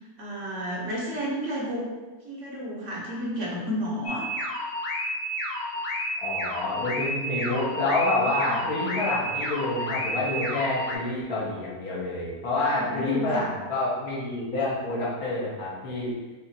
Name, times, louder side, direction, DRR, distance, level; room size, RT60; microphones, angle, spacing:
voice 1, 0.2-1.9 2.2-4.3 8.5-8.7 12.6-13.5, equal, 60° right, -4 dB, 1.0 m, -32 dB
sound 1, 4.0-10.9, equal, 85° left, 0.4 m, -31 dB
voice 2, 6.2-16.1, left 2 dB, 65° left, -6 dB, 1.5 m, -28 dB
5.5 x 2.4 x 2.7 m, 1.2 s
omnidirectional pair, 1.7 m